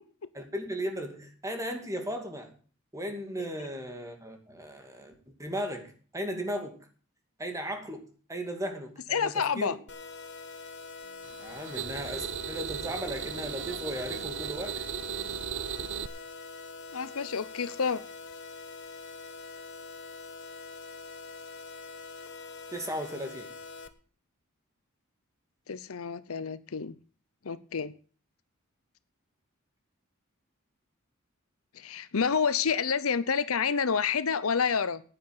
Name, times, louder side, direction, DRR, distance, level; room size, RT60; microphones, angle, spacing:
voice 1, 0.3-2.5 2.9-5.1 5.4-6.8 7.4-9.8 11.4-14.8 22.7-23.5, equal, 15° right, 5 dB, 2.4 m, -36 dB
voice 2, 9.1-9.8 16.9-18.0 25.7-27.0 27.4-27.9 31.7-35.0, left 6 dB, 75° left, 15 dB, 0.7 m, -28 dB
sound 1, 9.9-23.9, left 4 dB, 55° left, 1.2 m, -44 dB
sound 2, 11.2-16.1, right 8 dB, 55° right, 0.6 m, -36 dB
9.5 x 9.3 x 8.1 m, 0.41 s
head